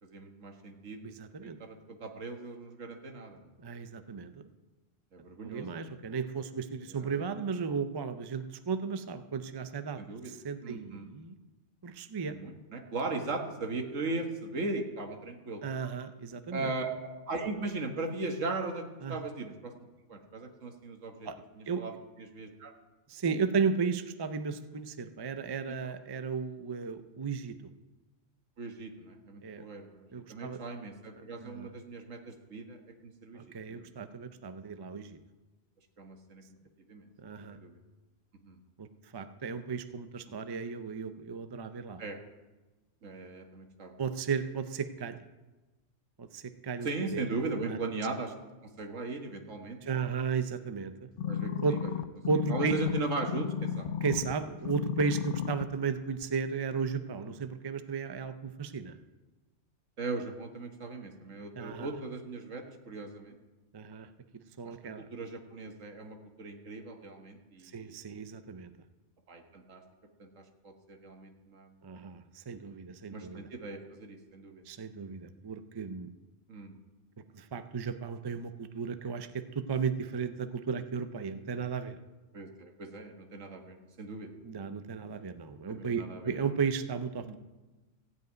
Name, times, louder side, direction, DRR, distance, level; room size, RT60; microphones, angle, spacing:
voice 1, 0.0-1.1 1.4-3.5 5.1-5.7 6.9-7.3 10.0-10.4 10.6-11.1 12.3-15.6 16.5-19.7 20.1-21.3 21.6-21.9 22.2-22.7 25.7-25.9 28.6-32.8 33.0-33.9 36.0-36.4 36.9-37.1 37.5-37.8 38.5-38.6 40.5-40.6 42.0-42.2 43.0-43.9 46.8-48.3 48.8-50.0 51.2-51.9 52.5-53.9 57.1-57.3 60.0-63.3 64.6-68.0 69.3-69.8 70.2-71.8 73.1-74.6 76.5-76.8 82.3-84.3 85.7-86.4 87.2-87.4, right 3 dB, 75° right, 4 dB, 1.8 m, -38 dB
voice 2, 1.0-1.6 3.6-4.3 5.5-11.3 11.8-12.3 15.6-16.7 19.0-19.2 21.2-21.4 21.7-21.8 23.1-27.6 29.4-29.6 30.1-30.6 31.4-31.7 33.4-35.2 37.2-37.6 38.8-38.9 39.1-42.0 44.0-45.2 46.2-47.3 47.6-47.8 49.8-51.1 51.6-51.7 52.3-52.7 54.0-59.0 61.6-61.9 63.7-64.1 64.3-65.1 67.7-68.7 71.8-73.5 74.7-76.1 77.3-82.0 84.4-87.4, right 5 dB, 35° right, 10 dB, 0.4 m, -34 dB
sound 1, 51.2-54.3 54.7-55.7 56.2-56.3, left 9 dB, 55° left, 0.6 m, -33 dB
15.5 x 5.4 x 9.2 m, 1.1 s
omnidirectional pair, 1.3 m